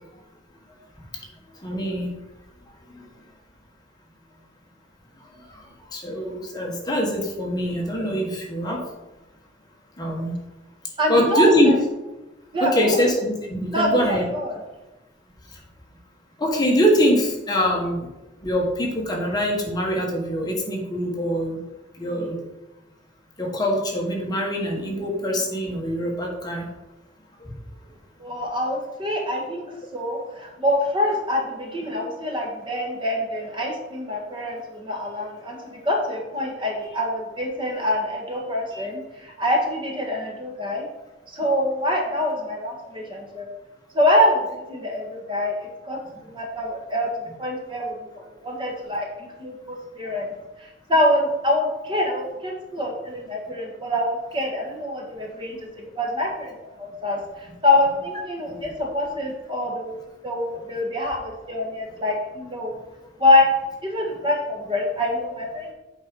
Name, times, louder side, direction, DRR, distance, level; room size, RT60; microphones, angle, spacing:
voice 1, 1.6-2.2 2.9-3.0 5.5-5.6 5.9-8.8 10.0-10.4 11.1-11.7 12.6-14.3 16.4-18.1 18.4-21.6 22.0-22.4 23.4-26.7 27.4-27.5 58.5-58.6, equal, 20° left, -1 dB, 1.4 m, -23 dB
voice 2, 11.0-11.7 12.5-13.0 13.7-14.6 28.2-40.9 41.3-43.5 43.9-45.5 45.8-46.0 46.3-47.1 47.4-50.3 50.6-62.7 63.2-63.5 63.8-65.7, left 1 dB, 25° right, 0 dB, 1.5 m, -25 dB
8.0 x 4.7 x 5.3 m, 1.0 s
head